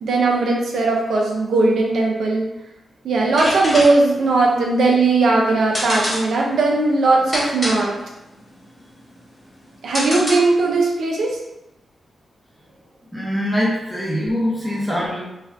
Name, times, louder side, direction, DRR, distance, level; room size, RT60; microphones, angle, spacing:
voice 1, 0.0-2.5 3.0-8.0 9.8-11.4 14.6-14.7, right 3 dB, 80° right, -1 dB, 0.5 m, -18 dB
sound 1, 3.2-10.8, equal, 25° left, 1.0 m, -28 dB
voice 2, 13.1-15.2, equal, 5° right, -6 dB, 0.8 m, -23 dB
2.5 x 2.4 x 3.3 m, 0.93 s
wide cardioid pair, 155°, 0 cm